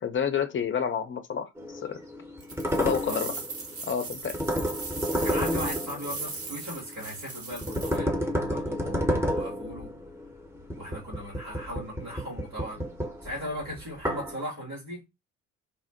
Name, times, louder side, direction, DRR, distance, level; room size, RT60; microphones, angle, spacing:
voice 1, 0.0-2.0 2.8-3.4 3.8-4.3, left 7 dB, 30° left, 0.5 m, -29 dB
sound 1, 1.6-7.1 7.5-14.3, equal, 5° right, 0.8 m, -31 dB
sound 2, 2.4-8.0, right 3 dB, 35° right, 0.9 m, -38 dB
voice 2, 5.1-9.9 10.8-12.9 13.2-15.0, equal, 90° right, 1.6 m, -38 dB
2.9 x 2.0 x 2.8 m
figure-of-eight pair, 45°, 42 cm